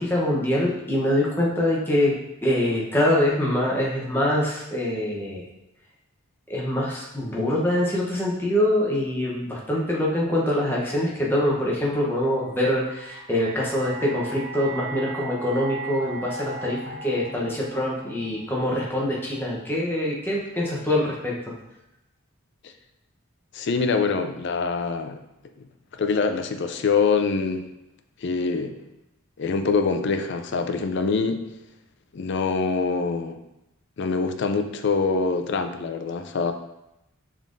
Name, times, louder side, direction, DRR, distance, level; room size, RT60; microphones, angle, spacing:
voice 1, 0.0-2.1 2.4-5.4 6.5-21.5, left 1 dB, 10° left, -4 dB, 0.8 m, -24 dB
sound 1, 12.3-19.5, right 2 dB, 90° left, 0.8 m, -38 dB
voice 2, 23.5-25.2 25.6-25.7 26.0-27.7 28.2-28.8 29.4-31.4 32.1-33.4 34.0-36.5, left 4 dB, 50° left, 7 dB, 0.4 m, -24 dB
5.5 x 3.6 x 2.5 m, 0.87 s
head